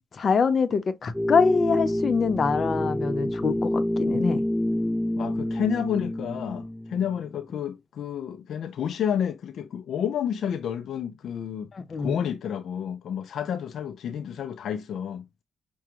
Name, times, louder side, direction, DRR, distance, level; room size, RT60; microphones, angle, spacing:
voice 1, 0.2-4.4 11.7-12.1, left 5 dB, 45° left, 0.8 m, -24 dB
sound 1, 1.1-7.2, left 1 dB, ahead, 0.4 m, -28 dB
voice 2, 5.2-11.7 12.0-15.3, left 8 dB, 65° left, 0.4 m, -30 dB
6.0 x 2.3 x 2.9 m
cardioid pair, 90°, 0 cm